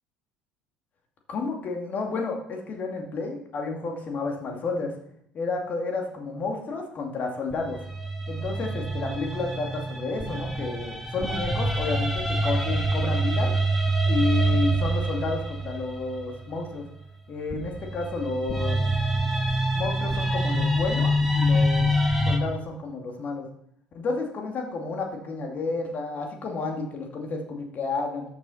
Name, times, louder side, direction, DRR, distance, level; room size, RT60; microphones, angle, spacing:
voice 1, 1.3-4.9 5.3-7.8 8.3-13.5 14.1-16.8 17.3-18.8 19.7-21.9 22.3-23.5 23.9-28.2, left 3 dB, 40° left, 2 dB, 2.5 m, -31 dB
sound 1, 7.5-16.6 17.5-22.4, right 1 dB, ahead, 2.1 m, -26 dB
13.0 x 7.4 x 4.2 m, 0.71 s
figure-of-eight pair, 60°, 4 cm